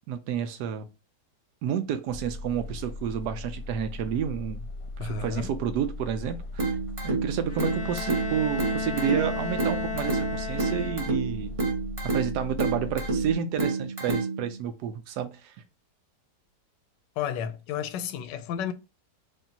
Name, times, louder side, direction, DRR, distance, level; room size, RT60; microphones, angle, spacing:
voice 1, 0.1-0.8 1.6-4.7 5.0-6.7 7.0-11.5 12.1-15.6, right 8 dB, 75° right, 1.1 m, -30 dB
sound 1, 2.1-13.3, left 2 dB, 65° left, 1.0 m, -38 dB
voice 2, 5.0-5.5 17.2-18.7, left 8 dB, 85° left, 1.2 m, -32 dB
sound 2, 6.6-14.6, right 3 dB, 25° right, 0.8 m, -30 dB
Bowed string instrument, 7.5-11.4, left 5 dB, 40° left, 0.8 m, -35 dB
5.1 x 2.6 x 2.7 m
omnidirectional pair, 1.9 m